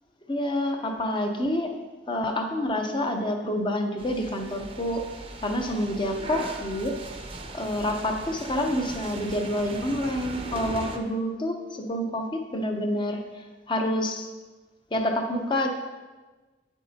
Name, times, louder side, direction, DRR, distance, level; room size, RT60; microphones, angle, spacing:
voice 1, 0.3-1.7 2.1-5.0 5.4-7.0 7.5-14.3 14.9-15.7, left 1 dB, 25° left, 3 dB, 0.8 m, -28 dB
sound 1, 4.0-11.0, right 2 dB, 30° right, 0.7 m, -38 dB
9.4 x 8.2 x 2.9 m, 1.3 s
head